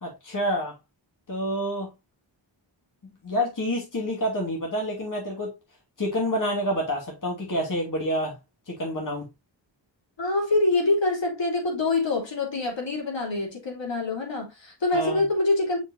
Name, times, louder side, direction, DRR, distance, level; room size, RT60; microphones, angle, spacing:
voice 1, 0.0-0.7 1.3-1.9 3.2-5.5 6.0-8.4 8.7-9.2 14.9-15.2, equal, 45° left, 2.6 m, -28 dB
voice 2, 10.2-15.8, left 2 dB, 70° left, 3.4 m, -25 dB
6.8 x 6.0 x 2.7 m
wide cardioid pair, 105°, 45 cm